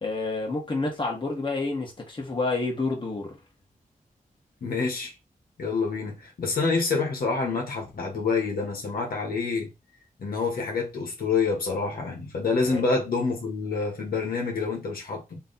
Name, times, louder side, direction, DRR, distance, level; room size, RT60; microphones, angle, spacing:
voice 1, 0.0-3.4 12.6-12.8, left 3 dB, 35° left, 1.6 m, -29 dB
voice 2, 4.6-5.1 5.6-9.7 10.2-15.4, left 4 dB, 85° left, 1.5 m, -27 dB
3.3 x 3.2 x 4.1 m
wide cardioid pair, 95°, 15 cm